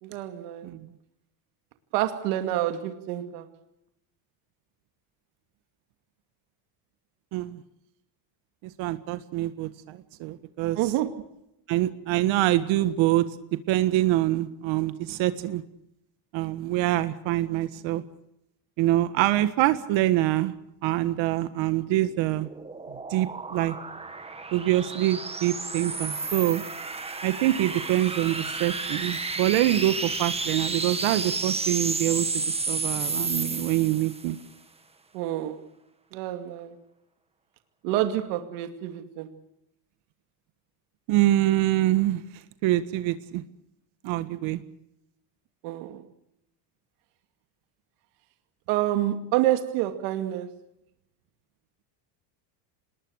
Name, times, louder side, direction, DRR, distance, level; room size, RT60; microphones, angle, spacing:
voice 1, 0.0-0.7 1.9-3.5 10.8-11.1 35.1-35.6 36.1-36.8 37.8-39.3 45.6-46.0 48.7-50.5, right 13 dB, 85° right, 2.5 m, -28 dB
voice 2, 7.3-7.6 8.6-10.9 11.7-15.6 16.3-18.0 18.8-20.5 20.8-22.5 22.9-23.7 24.5-26.6 27.2-34.4 41.1-43.4 44.0-44.6, right 15 dB, 65° right, 1.7 m, -25 dB
sound 1, 21.9-34.4, right 3 dB, 10° right, 1.9 m, -32 dB
26.5 x 20.5 x 6.4 m
cardioid pair, 150°, 50 cm